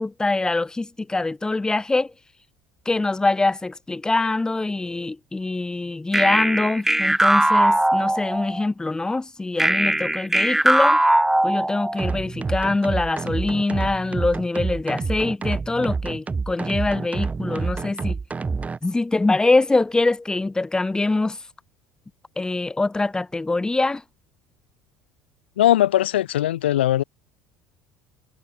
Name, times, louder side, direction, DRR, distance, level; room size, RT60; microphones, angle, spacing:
voice 1, 0.0-2.1 2.9-11.0 11.4-18.2 18.8-21.4 22.4-24.0, left 2 dB, 10° left, 0.8 m, -24 dB
sound 1, 6.1-8.6 9.6-12.1, right 1 dB, 5° right, 1.7 m, -20 dB
sound 2, 12.0-18.8, right 4 dB, 25° right, 5.4 m, -28 dB
voice 2, 25.6-27.0, left 13 dB, 75° left, 1.4 m, -19 dB
figure-of-eight pair, 65°, 6 cm